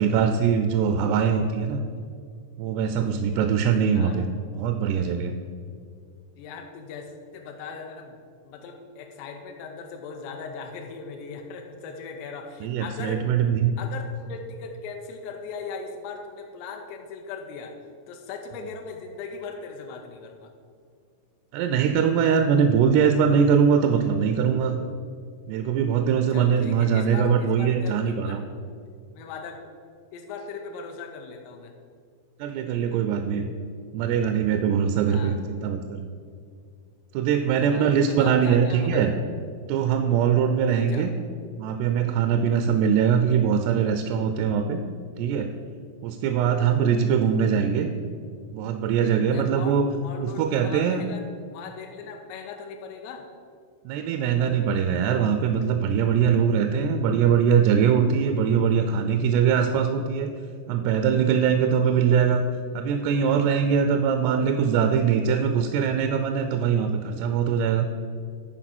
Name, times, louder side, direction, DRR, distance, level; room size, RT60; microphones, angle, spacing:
voice 1, 0.0-1.8 2.6-4.3 4.5-5.4 12.6-13.8 21.5-24.8 25.5-28.4 32.4-33.5 33.9-36.0 37.1-39.1 39.7-41.1 41.6-44.8 45.2-45.5 46.0-47.9 48.5-49.9 50.2-51.0 53.9-60.3 60.7-62.4 62.7-67.9, right 7 dB, 85° right, 7 dB, 2.5 m, -22 dB
voice 2, 6.4-13.2 13.8-17.7 18.1-20.5 26.3-28.5 29.1-29.6 30.1-31.7 35.1-35.4 37.6-39.0 40.7-41.1 49.3-51.2 51.5-53.3, left 5 dB, 90° left, 2 dB, 2.8 m, -39 dB
11.0 x 4.7 x 5.9 m, 2.2 s
omnidirectional pair, 5.0 m